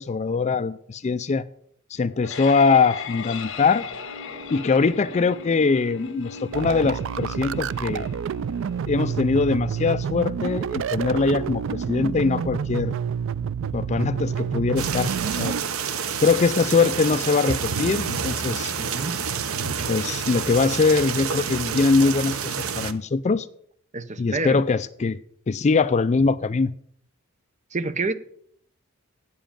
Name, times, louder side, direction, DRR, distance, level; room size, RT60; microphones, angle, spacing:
voice 1, 0.0-1.4 1.9-3.9 4.5-8.1 8.9-12.9 13.7-15.5 16.2-18.7 19.9-23.5 24.2-25.2 25.5-26.7, left 4 dB, 35° left, 0.4 m, -22 dB
sound 1, 1.9-12.9, left 5 dB, 65° left, 1.8 m, -39 dB
sound 2, 6.5-15.6, right 7 dB, 65° right, 0.3 m, -28 dB
sound 3, 14.8-22.9, right 6 dB, 80° right, 0.8 m, -28 dB
voice 2, 18.8-19.2 23.9-24.6 27.7-28.1, right 3 dB, 35° right, 0.8 m, -28 dB
9.0 x 7.2 x 8.8 m
head